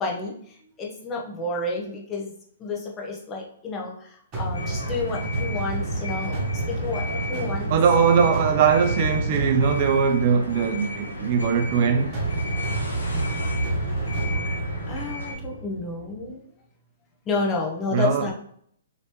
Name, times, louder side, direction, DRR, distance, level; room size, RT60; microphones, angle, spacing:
voice 1, 0.0-2.3 2.6-7.7 14.9-16.4 17.3-18.3, left 3 dB, 20° left, 0.9 m, -30 dB
sound 1, 4.3-16.2, right 2 dB, 30° right, 1.2 m, -29 dB
sound 2, 4.5-15.3, left 2 dB, 85° left, 0.8 m, -35 dB
voice 2, 7.7-12.2 17.9-18.2, right 6 dB, 45° right, 0.4 m, -21 dB
3.1 x 2.9 x 2.9 m
hypercardioid pair, 130°, 0 cm